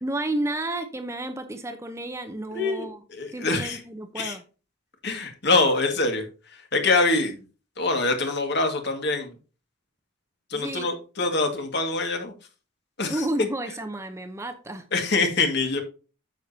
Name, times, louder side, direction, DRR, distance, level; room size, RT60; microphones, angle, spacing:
voice 1, 0.0-3.0 3.3-4.4 10.5-10.9 13.1-14.8, right 1 dB, 15° right, 7 dB, 0.8 m, -31 dB
voice 2, 2.5-3.8 4.2-4.4 5.0-7.4 7.8-9.3 10.5-12.3 13.0-13.3 14.9-15.8, left 3 dB, 55° left, 4 dB, 2.0 m, -25 dB
9.4 x 7.2 x 2.8 m, 0.34 s
head